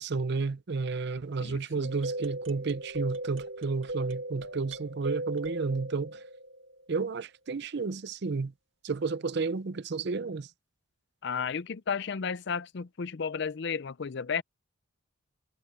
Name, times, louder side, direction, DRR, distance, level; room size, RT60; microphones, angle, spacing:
voice 1, 0.0-6.2 6.9-8.5 8.8-10.5, right 4 dB, 55° right, 0.6 m, -32 dB
voice 2, 1.4-1.9 11.2-14.4, left 6 dB, 60° left, 0.5 m, -33 dB
sound 1, 1.8-6.9, right 1 dB, 70° right, 2.2 m, -37 dB
head